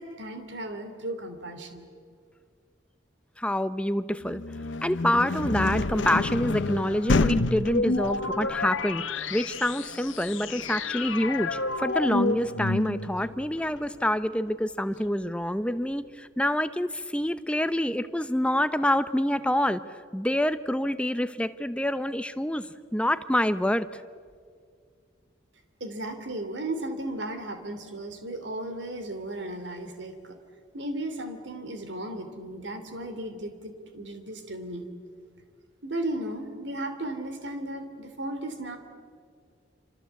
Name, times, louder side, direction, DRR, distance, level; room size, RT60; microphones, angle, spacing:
voice 1, 0.0-1.8 25.8-30.4 30.7-34.9 35.8-38.8, right 1 dB, 70° right, 8 dB, 2.9 m, -35 dB
voice 2, 3.4-4.4 4.8-9.0 9.3-19.8 20.1-24.0, left 1 dB, 5° left, 12 dB, 0.7 m, -27 dB
sound 1, 4.2-14.0, left 3 dB, 75° left, 0.8 m, -31 dB
sound 2, 7.0-13.3, left 3 dB, 90° left, 1.5 m, -30 dB
27.0 x 26.5 x 8.3 m, 2.1 s
head